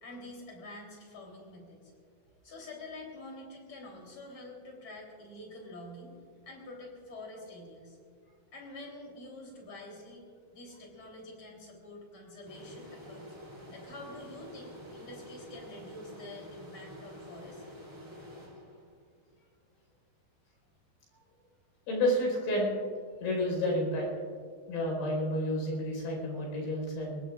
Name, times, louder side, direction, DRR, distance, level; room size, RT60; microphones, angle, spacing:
voice 1, 0.0-1.9 2.4-6.1 6.5-8.0 8.5-13.3 13.7-17.6, left 2 dB, 35° left, -1 dB, 4.2 m, -47 dB
sound 1, 12.5-19.1, equal, 10° right, 1.4 m, -48 dB
voice 2, 21.9-22.7 23.2-24.1 24.7-27.2, left 1 dB, 85° left, -1 dB, 7.0 m, -30 dB
24.5 x 20.5 x 2.5 m, 2.1 s
omnidirectional pair, 4.7 m